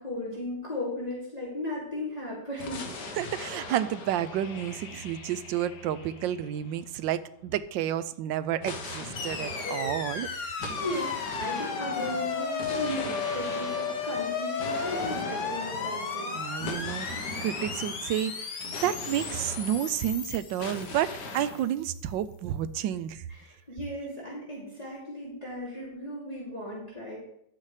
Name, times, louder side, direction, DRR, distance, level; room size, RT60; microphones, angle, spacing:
voice 1, 0.0-2.8 9.6-16.3 23.4-27.2, left 1 dB, 20° left, -7 dB, 3.0 m, -36 dB
sound 1, 2.6-7.3 8.6-20.2 20.6-21.7, left 3 dB, 65° left, 1.7 m, -41 dB
voice 2, 3.2-10.3 16.3-23.2, right 11 dB, 90° right, 14 dB, 1.3 m, -31 dB
sound 2, 9.2-21.4, left 5 dB, 50° left, 1.2 m, -34 dB
11.0 x 8.5 x 3.3 m, 0.75 s
omnidirectional pair, 2.0 m